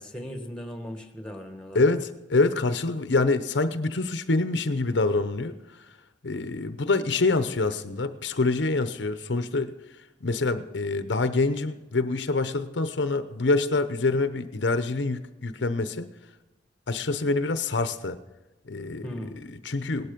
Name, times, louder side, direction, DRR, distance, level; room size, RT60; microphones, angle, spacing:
voice 1, 0.0-2.0 19.0-19.4, equal, 5° left, 6 dB, 1.5 m, -37 dB
voice 2, 1.7-5.5 6.2-9.7 10.2-16.1 16.9-18.2 18.7-19.1 19.3-20.1, left 3 dB, 80° left, 11 dB, 0.9 m, -26 dB
18.0 x 12.0 x 5.2 m, 1.1 s
head